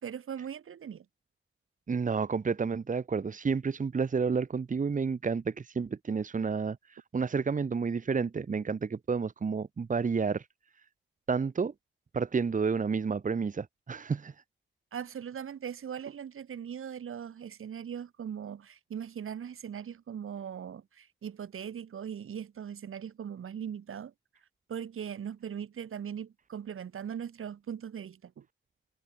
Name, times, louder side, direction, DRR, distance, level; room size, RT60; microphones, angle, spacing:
voice 1, 0.0-1.1 14.9-24.1 24.7-28.5, right 8 dB, 80° right, 5.1 m, -40 dB
voice 2, 1.9-10.4 11.3-11.7 12.1-14.3, right 5 dB, 40° right, 1.4 m, -30 dB
wide cardioid pair, 130°, 21 cm